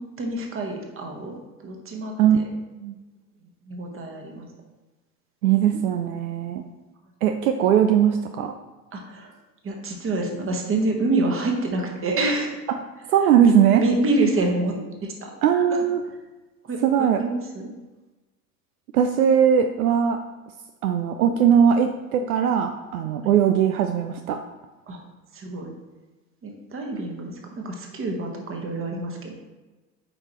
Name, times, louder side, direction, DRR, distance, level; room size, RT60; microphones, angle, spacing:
voice 1, 0.0-1.4 1.6-2.4 3.7-4.5 5.6-6.0 8.9-9.3 9.6-12.5 13.2-15.8 16.6-17.7 23.2-23.3 24.9-25.0 25.3-25.7 26.4-29.3, right 2 dB, 30° right, 2 dB, 1.4 m, -27 dB
voice 2, 5.4-6.6 7.2-8.5 13.1-13.8 15.4-16.0 16.8-17.2 18.9-20.2 20.8-24.4, right 8 dB, 70° right, 6 dB, 0.6 m, -19 dB
8.4 x 4.9 x 3.1 m, 1.2 s
figure-of-eight pair, 75°, 44 cm